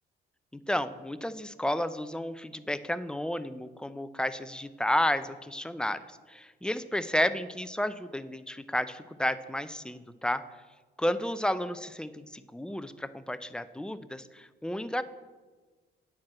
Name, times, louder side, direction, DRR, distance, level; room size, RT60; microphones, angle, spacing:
voice 1, 0.7-10.4 11.0-15.0, left 1 dB, 5° left, 12 dB, 0.4 m, -32 dB
9.4 x 4.5 x 7.5 m, 1.3 s
cardioid pair, 90°, 20 cm